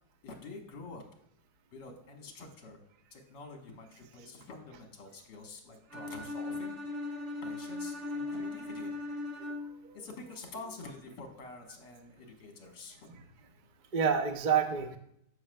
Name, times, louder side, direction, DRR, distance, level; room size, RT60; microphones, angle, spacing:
voice 1, 0.2-1.0 1.7-2.8 3.1-6.7 7.4-8.9 9.9-13.1, left 3 dB, 70° left, 2 dB, 2.1 m, -47 dB
Bowed string instrument, 5.9-9.9, left 2 dB, 40° right, 1.6 m, -38 dB
voice 2, 8.0-8.7 9.4-9.5 9.9-10.3 10.6-10.8 13.1-13.2 13.9-15.0, right 7 dB, 80° right, 7 dB, 0.4 m, -32 dB
13.5 x 5.8 x 2.3 m, 0.72 s
omnidirectional pair, 2.0 m